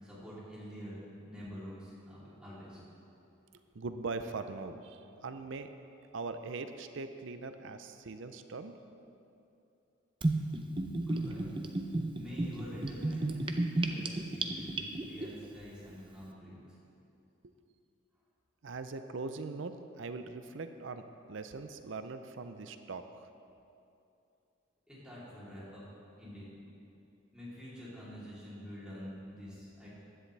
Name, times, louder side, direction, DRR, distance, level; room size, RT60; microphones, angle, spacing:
voice 1, 0.0-2.8 11.0-11.4 12.1-13.3 13.8-16.6 24.9-25.8 26.2-26.5 27.3-29.9, equal, 5° right, -10 dB, 3.2 m, -47 dB
voice 2, 3.7-5.7 6.1-8.8 17.4-17.5 18.6-23.3, right 3 dB, 70° right, 9 dB, 0.5 m, -41 dB
Gurgling / Bathtub (filling or washing), 10.2-15.3, right 2 dB, 25° right, 0.6 m, -32 dB
15.5 x 10.5 x 3.3 m, 2.7 s
head